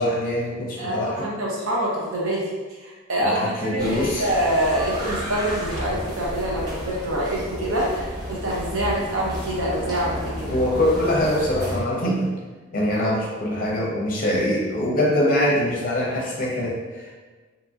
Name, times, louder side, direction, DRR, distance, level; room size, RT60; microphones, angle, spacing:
voice 1, 0.0-1.3 3.2-4.3 10.5-12.3 12.7-17.2, left 1 dB, 40° left, -3 dB, 0.6 m, -23 dB
voice 2, 0.8-2.5 2.8-10.5, right 1 dB, 75° right, -4 dB, 0.7 m, -25 dB
sound 1, 3.8-11.8, equal, 20° right, 0.6 m, -32 dB
2.8 x 2.6 x 2.3 m, 1.3 s
head